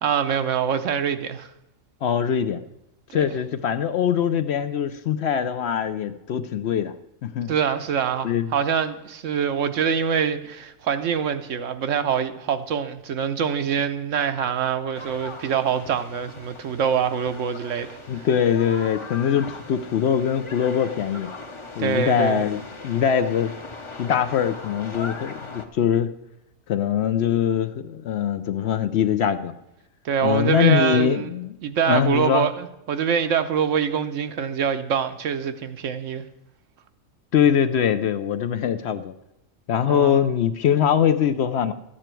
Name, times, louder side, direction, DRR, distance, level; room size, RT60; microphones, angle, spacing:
voice 1, 0.0-1.5 3.1-3.4 7.5-17.9 18.2-18.3 21.8-22.4 30.0-31.3 31.6-36.2 39.8-40.3, right 7 dB, 70° right, 1.1 m, -24 dB
voice 2, 2.0-2.6 3.1-6.9 7.2-7.5 8.2-8.5 18.1-21.3 21.8-23.5 24.0-26.1 26.7-29.5 30.2-31.6 31.9-32.5 37.3-39.1 39.7-41.7, left 8 dB, 65° left, 0.7 m, -22 dB
sound 1, 14.9-25.7, left 3 dB, 25° left, 0.7 m, -39 dB
13.5 x 8.9 x 4.5 m
omnidirectional pair, 1.4 m